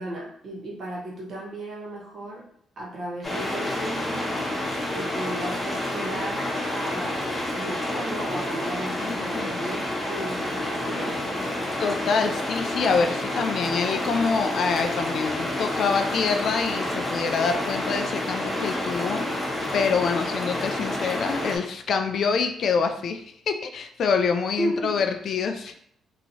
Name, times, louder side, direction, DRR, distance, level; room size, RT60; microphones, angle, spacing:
voice 1, 0.0-2.5 2.8-4.4 4.9-11.6 24.6-25.0, right 1 dB, 55° right, -4 dB, 1.2 m, -34 dB
sound 1, 3.2-21.6, left 1 dB, 15° left, 1.0 m, -29 dB
voice 2, 9.0-9.6 11.8-25.7, left 5 dB, 60° left, 6 dB, 0.3 m, -26 dB
2.9 x 2.7 x 2.7 m, 0.67 s
cardioid pair, 90°, 0 cm